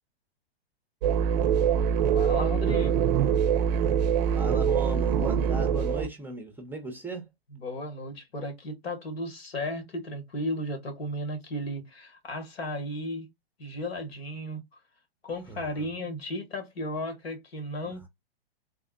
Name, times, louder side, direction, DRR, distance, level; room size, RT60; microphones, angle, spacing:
sound 1, 1.0-6.1, right 8 dB, 45° right, 0.6 m, -24 dB
voice 1, 2.1-3.1 7.5-13.3 13.6-14.8 15.2-18.1, left 1 dB, 75° left, 1.9 m, -35 dB
voice 2, 4.3-7.3 15.5-15.7, right 2 dB, 5° right, 0.7 m, -36 dB
3.6 x 2.0 x 3.8 m
hypercardioid pair, 120°, 31 cm